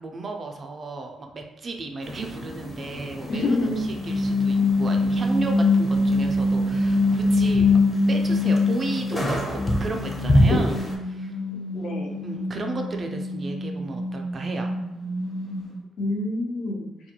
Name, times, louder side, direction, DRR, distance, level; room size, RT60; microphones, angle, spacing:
voice 1, 0.0-7.8 8.1-11.4 12.2-14.7, right 3 dB, 40° right, 3 dB, 0.3 m, -34 dB
sound 1, 2.0-11.0, equal, 15° left, 0.5 m, -28 dB
voice 2, 3.3-3.8 11.5-12.2 16.0-16.9, left 2 dB, 65° left, 1 dB, 0.5 m, -27 dB
sound 2, 3.9-9.2 9.5-15.8, left 2 dB, 50° left, 0.9 m, -24 dB
2.3 x 2.1 x 2.8 m, 1.0 s
cardioid pair, 90°, 0 cm